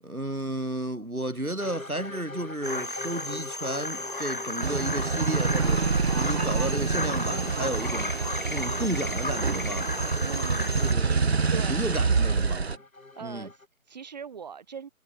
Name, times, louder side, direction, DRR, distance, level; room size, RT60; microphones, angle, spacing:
voice 1, 0.0-8.1 8.5-9.9 10.8-11.4 11.7-12.7 13.2-13.5, right 1 dB, 90° right, 5.2 m, -33 dB
sound 1, 1.6-13.7, left 3 dB, 75° left, 2.8 m, -43 dB
sound 2, 2.6-10.9, left 2 dB, 40° left, 0.5 m, -34 dB
sound 3, 4.6-12.8, right 4 dB, 50° right, 0.7 m, -27 dB
voice 2, 10.1-11.8 13.2-14.9, right 7 dB, 30° right, 3.5 m, -41 dB
figure-of-eight pair, 155°, 42 cm